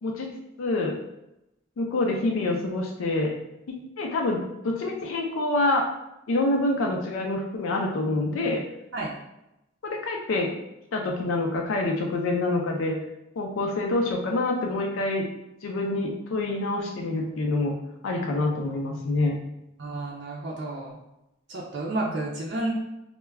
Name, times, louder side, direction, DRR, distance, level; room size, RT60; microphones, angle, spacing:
voice 1, 0.0-0.3 0.6-1.0 1.8-3.4 3.7-5.8 6.3-8.6 9.8-10.5 10.9-13.0 13.4-15.2 15.6-17.8 18.0-19.4 22.0-22.1, left 2 dB, 80° left, 1 dB, 0.4 m, -26 dB
voice 2, 19.8-21.0 21.5-22.7, right 2 dB, 55° right, -3 dB, 0.5 m, -31 dB
2.2 x 2.1 x 3.3 m, 0.89 s
head